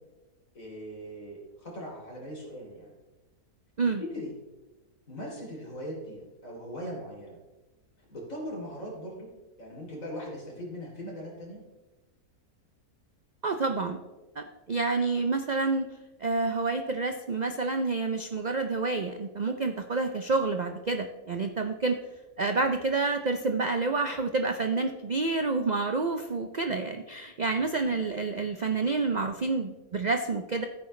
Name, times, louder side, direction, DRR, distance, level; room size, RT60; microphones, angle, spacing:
voice 1, 0.5-2.9 4.0-4.3 5.1-7.4 8.1-9.3 9.6-11.6 27.5-27.6, equal, 60° left, -2 dB, 3.6 m, -40 dB
voice 2, 13.4-14.0 14.4-15.9 16.2-22.0 22.4-30.7, right 3 dB, 60° right, 6 dB, 0.4 m, -28 dB
14.5 x 8.6 x 3.2 m, 1.1 s
omnidirectional pair, 1.6 m